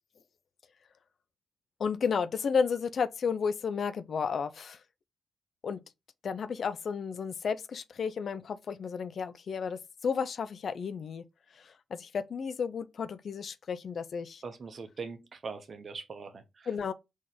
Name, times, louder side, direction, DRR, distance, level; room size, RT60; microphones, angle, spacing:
voice 1, 1.8-4.8 5.6-5.8 6.2-11.2 11.5-14.4 16.7-16.9, left 6 dB, 60° left, 0.4 m, -32 dB
voice 2, 14.4-16.7, right 4 dB, 50° right, 0.9 m, -42 dB
3.9 x 3.0 x 3.9 m
hypercardioid pair, 45°, 0 cm